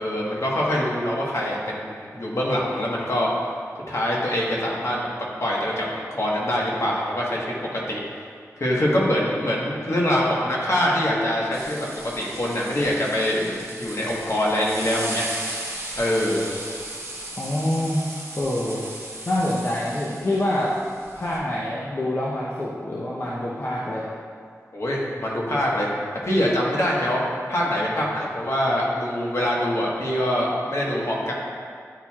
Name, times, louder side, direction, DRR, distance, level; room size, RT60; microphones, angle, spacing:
voice 1, 0.0-3.3 3.9-8.0 8.6-13.5 13.8-15.5 16.0-16.5 24.7-25.9 26.2-27.2 27.5-31.3, left 1 dB, 55° left, -4 dB, 1.3 m, -24 dB
sound 1, 11.5-21.4, right 1 dB, 55° right, 1.2 m, -36 dB
voice 2, 17.4-18.0 18.4-18.8 19.3-20.7 21.1-24.0, left 1 dB, 40° left, -7 dB, 0.8 m, -26 dB
10.0 x 4.4 x 2.4 m, 2.1 s
wide cardioid pair, 65°, 6 cm